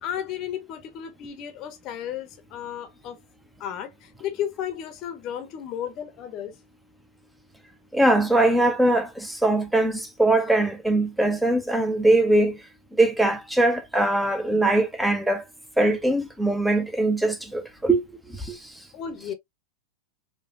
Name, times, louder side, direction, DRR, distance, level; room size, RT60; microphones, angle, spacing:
voice 1, 0.0-3.2 3.6-6.6 18.9-19.3, left 9 dB, 35° left, 0.8 m, -33 dB
voice 2, 7.9-12.6 12.9-15.5 15.8-18.0 18.3-18.7, right 2 dB, 5° right, 0.7 m, -21 dB
4.8 x 2.3 x 2.4 m
figure-of-eight pair, 90°, 0 cm